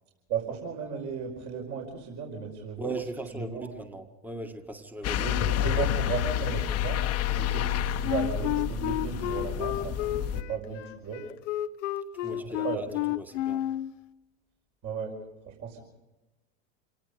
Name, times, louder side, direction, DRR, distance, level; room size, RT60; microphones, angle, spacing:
voice 1, 0.3-2.9 3.3-3.7 5.2-7.0 7.4-11.2 12.3-13.0 14.8-15.1 15.5-15.8, right 6 dB, 45° right, 0 dB, 5.4 m, -35 dB
voice 2, 2.8-5.3 5.8-5.9 12.2-13.7, right 2 dB, 5° right, 6 dB, 1.9 m, -38 dB
sound 1, 5.0-10.4, left 10 dB, 40° left, 1.3 m, -29 dB
Wind instrument woodwind instrument, 8.0-13.9, left 13 dB, 75° left, 1.0 m, -31 dB
28.0 x 18.0 x 5.3 m, 1.0 s
hypercardioid pair, 100°, 38 cm